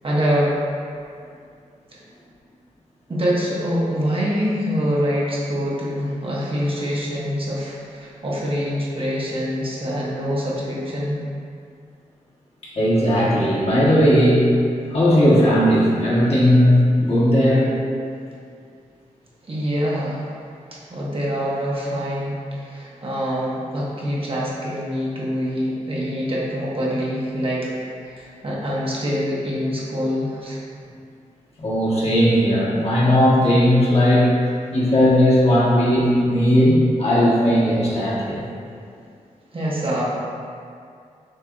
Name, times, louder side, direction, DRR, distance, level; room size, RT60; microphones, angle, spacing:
voice 1, 0.0-0.6 1.9-2.0 3.1-11.3 19.4-20.3 20.7-30.6 39.5-40.0, equal, 40° right, -6 dB, 1.0 m, -25 dB
voice 2, 12.7-14.4 14.9-17.7 31.6-34.3 34.7-38.4, equal, 50° left, -8 dB, 1.4 m, -17 dB
6.5 x 2.7 x 2.6 m, 2.3 s
cardioid pair, 70°, 14 cm